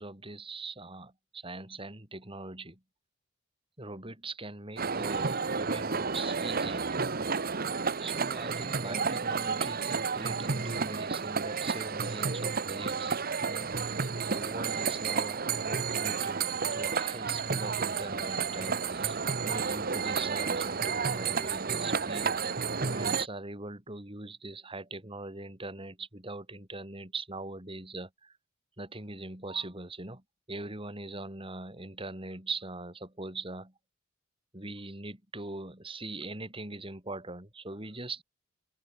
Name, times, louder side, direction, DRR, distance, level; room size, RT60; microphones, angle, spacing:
voice 1, 0.0-2.8 3.8-7.0 8.0-13.2 13.5-13.7 14.3-28.4 28.8-33.7 34.5-38.2, right 2 dB, 25° right, 5.3 m, -41 dB
sound 1, 4.8-23.3, right 5 dB, 50° right, 1.2 m, -31 dB
open air
head